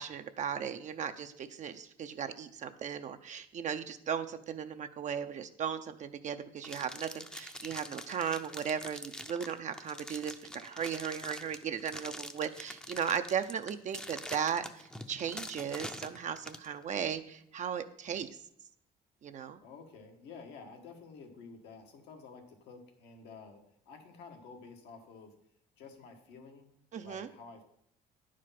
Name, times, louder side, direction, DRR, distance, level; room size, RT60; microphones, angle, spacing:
voice 1, 0.0-18.3 19.2-19.6 26.9-27.3, right 8 dB, 45° right, 8 dB, 0.6 m, -36 dB
sound 1, 6.6-16.7, left 1 dB, 5° left, 0.6 m, -45 dB
voice 2, 19.6-25.3 25.8-26.7 27.0-27.6, left 4 dB, 85° left, 4 dB, 1.6 m, -51 dB
10.0 x 5.0 x 5.7 m, 0.72 s
cardioid pair, 110°, 17 cm